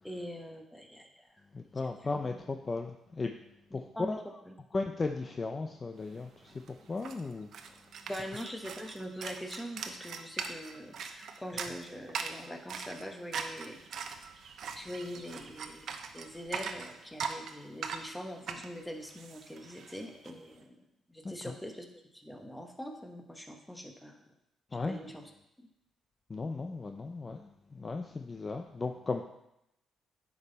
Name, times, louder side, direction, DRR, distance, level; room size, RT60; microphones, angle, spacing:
voice 1, 0.0-1.3 1.8-2.4 3.7-4.2 4.5-4.6 8.0-14.1 14.8-20.8 21.1-24.2 24.8-25.3 25.6-25.7, equal, 10° left, 4 dB, 1.2 m, -43 dB
voice 2, 1.5-3.3 3.7-4.2 4.7-6.6 6.9-7.7 21.2-21.5 24.7-25.0 26.3-29.3, left 3 dB, 30° left, 5 dB, 0.5 m, -36 dB
sound 1, 6.2-6.3 6.5-20.3, right 6 dB, 65° right, 0.8 m, -41 dB
9.6 x 5.5 x 4.1 m, 0.84 s
cardioid pair, 90°, 0 cm